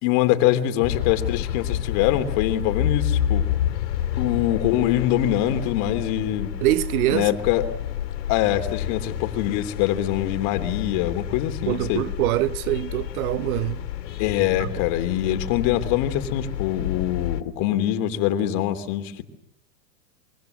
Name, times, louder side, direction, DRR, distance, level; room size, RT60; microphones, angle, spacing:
voice 1, 0.0-3.5 4.2-6.5 7.1-7.7 8.3-12.0 14.2-19.2, left 12 dB, 50° left, 3.0 m, -24 dB
sound 1, 0.8-17.4, left 10 dB, 80° left, 2.4 m, -29 dB
voice 2, 6.6-7.3 11.7-13.8 14.6-14.7, right 16 dB, 60° right, 1.1 m, -24 dB
25.0 x 23.5 x 7.9 m
hypercardioid pair, 130°, 49 cm